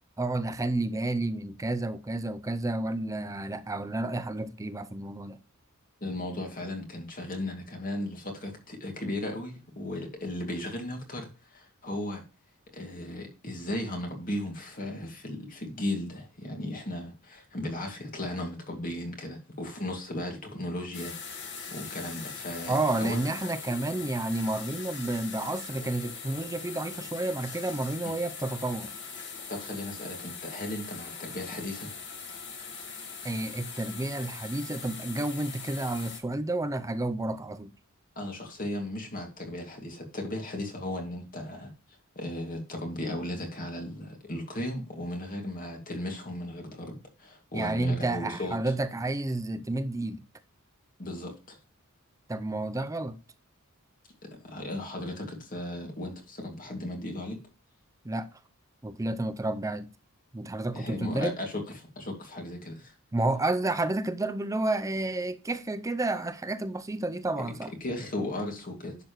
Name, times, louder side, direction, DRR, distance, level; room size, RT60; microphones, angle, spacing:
voice 1, 0.2-5.4 22.7-28.9 33.2-37.7 47.5-50.2 52.3-53.2 58.0-58.4 58.8-59.9 60.3-61.4 63.1-67.7, right 2 dB, 15° right, 0.5 m, -30 dB
voice 2, 6.0-12.2 12.7-22.7 23.0-23.3 29.5-31.9 38.2-41.7 42.2-48.6 51.0-51.6 54.2-57.4 60.7-62.9 67.8-69.0, left 1 dB, 40° left, 2.3 m, -36 dB
sound 1, 20.9-36.2, left 5 dB, 55° left, 1.9 m, -41 dB
10.5 x 6.8 x 3.1 m
head